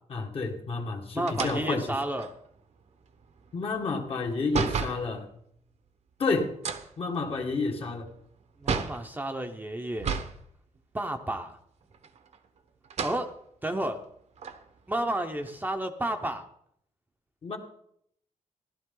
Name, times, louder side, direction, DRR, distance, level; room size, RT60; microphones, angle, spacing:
voice 1, 0.1-1.9 3.5-5.3 6.2-6.5 7.0-8.1 17.4-17.6, left 3 dB, 45° left, 2 dB, 1.8 m, -30 dB
voice 2, 1.1-2.3 8.6-10.1 10.9-11.6 13.0-13.3 13.6-14.0 14.9-16.4, right 1 dB, 15° right, 5 dB, 0.8 m, -31 dB
sound 1, 1.3-5.1 6.5-9.1 10.0-10.4 10.8-10.9 11.9-12.5 12.8-13.2 13.9-14.0 14.4-15.8, right 5 dB, 60° right, 1.0 m, -33 dB
15.0 x 12.0 x 3.9 m, 0.70 s
wide cardioid pair, 140°, 13 cm